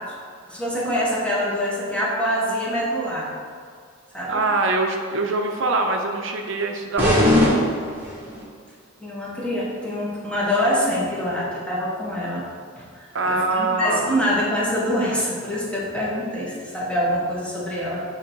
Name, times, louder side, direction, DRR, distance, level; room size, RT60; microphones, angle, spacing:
voice 1, 0.5-3.3 4.1-4.4 9.0-12.4 12.8-18.0, equal, 5° left, -5 dB, 1.1 m, -25 dB
voice 2, 4.3-7.7 13.1-14.2, right 2 dB, 65° right, 3 dB, 0.6 m, -24 dB
sound 1, 7.0-8.4, left 1 dB, 10° right, 1.4 m, -19 dB
8.5 x 3.3 x 4.5 m, 2.1 s
head